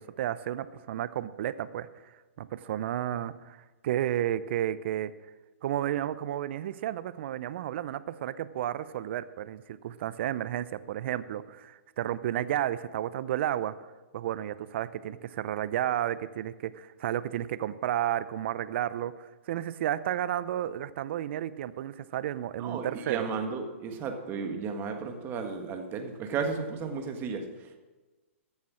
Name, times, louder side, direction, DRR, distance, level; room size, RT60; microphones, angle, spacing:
voice 1, 0.0-1.9 2.4-5.1 5.6-13.7 14.1-23.3, right 11 dB, 55° right, 15 dB, 0.6 m, -32 dB
voice 2, 22.6-27.8, right 5 dB, 30° right, 5 dB, 1.6 m, -34 dB
14.5 x 7.5 x 6.2 m, 1.2 s
hypercardioid pair, 125°, 7 cm